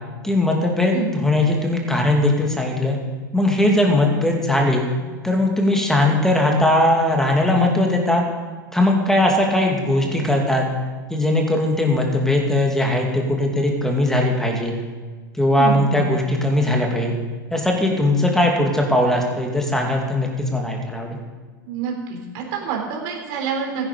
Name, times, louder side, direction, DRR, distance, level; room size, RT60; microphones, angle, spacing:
voice 1, 0.2-3.0 3.3-4.9 5.2-8.2 8.7-10.7 11.1-14.7 15.3-17.1 17.5-21.2, left 1 dB, 5° left, 1 dB, 2.6 m, -19 dB
voice 2, 15.6-16.0 21.6-23.9, right 5 dB, 55° right, 1 dB, 3.5 m, -27 dB
15.5 x 10.0 x 5.1 m, 1.4 s
hypercardioid pair, 100°, 11 cm